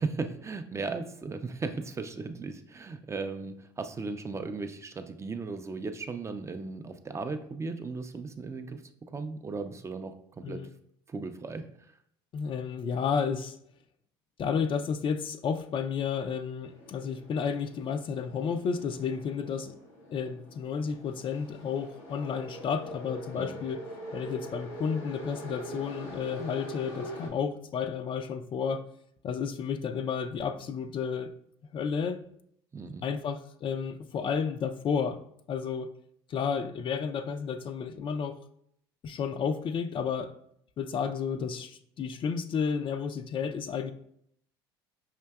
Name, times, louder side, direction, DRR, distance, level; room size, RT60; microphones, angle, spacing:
voice 1, 0.0-8.8 9.1-10.7 11.1-12.0 23.3-23.6 32.7-33.1, right 4 dB, 20° right, 0.4 m, -36 dB
voice 2, 12.3-13.6 14.4-19.8 20.1-23.8 24.1-28.8 29.2-31.3 31.7-32.2 33.0-35.2 35.5-35.9 36.3-38.4 39.0-40.3 40.8-43.9, left 6 dB, 40° left, 0.4 m, -32 dB
sound 1, 16.6-27.3, equal, 80° left, 1.4 m, -44 dB
5.6 x 2.6 x 2.3 m
hypercardioid pair, 75°, 13 cm